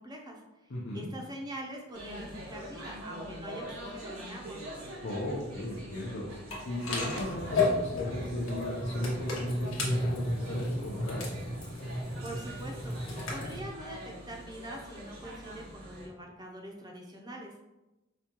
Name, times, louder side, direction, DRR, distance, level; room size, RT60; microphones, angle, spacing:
voice 1, 0.0-4.6 12.2-17.6, right 1 dB, 20° right, 0 dB, 0.5 m, -44 dB
voice 2, 0.7-1.1 5.0-6.3 6.7-11.2, left 1 dB, 65° left, -5 dB, 0.6 m, -36 dB
sound 1, 1.9-16.1, equal, 90° right, 0.9 m, -44 dB
sound 2, 6.5-13.6, left 2 dB, 80° left, 1.0 m, -33 dB
5.0 x 2.3 x 2.9 m, 1.0 s
head